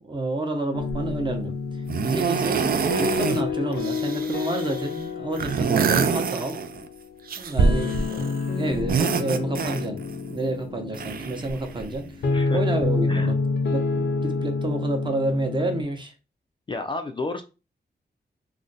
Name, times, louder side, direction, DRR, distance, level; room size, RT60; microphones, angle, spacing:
voice 1, 0.0-2.6 3.0-6.6 7.4-8.1 8.6-10.0 10.3-12.1 12.5-13.4 13.7-16.1, right 2 dB, 25° right, 0.7 m, -29 dB
sound 1, 0.7-15.8, left 4 dB, 75° left, 0.6 m, -29 dB
sound 2, 0.9-1.2 1.9-3.4 3.7-4.9 5.3-6.9 7.3-8.4 8.7-10.1 10.9-12.0 12.9-13.0, right 5 dB, 55° right, 0.4 m, -25 dB
voice 2, 12.3-12.6 13.1-13.3 16.7-17.4, left 3 dB, 30° left, 0.3 m, -31 dB
2.5 x 2.1 x 3.9 m
wide cardioid pair, 95°, 18 cm